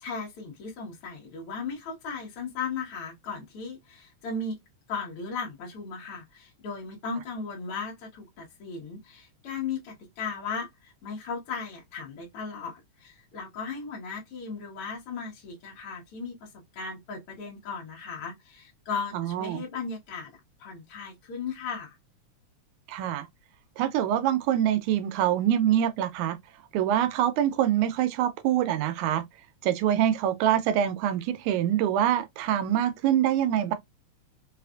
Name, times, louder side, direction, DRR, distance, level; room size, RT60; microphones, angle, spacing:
voice 1, 0.0-4.6 4.9-22.0, left 5 dB, 60° left, 1.8 m, -36 dB
voice 2, 19.1-19.6 22.9-23.3 23.8-26.4 26.7-29.3 29.6-33.7, right 11 dB, 90° right, 2.0 m, -25 dB
4.9 x 2.4 x 2.3 m
omnidirectional pair, 3.3 m